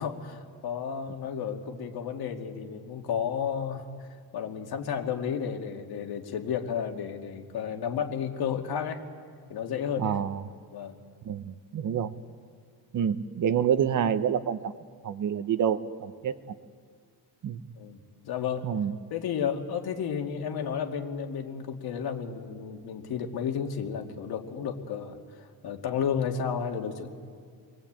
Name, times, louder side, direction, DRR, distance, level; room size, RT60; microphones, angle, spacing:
voice 1, 0.0-9.0 9.5-10.2 10.7-11.0 17.8-18.7 19.1-27.1, left 7 dB, 70° left, 3 dB, 2.4 m, -32 dB
voice 2, 10.0-10.4 11.2-12.1 12.9-14.7 15.0-16.4 17.4-17.6 18.6-18.9, right 8 dB, 50° right, 11 dB, 1.0 m, -27 dB
29.5 x 22.0 x 8.8 m, 2.1 s
cardioid pair, 170°, 39 cm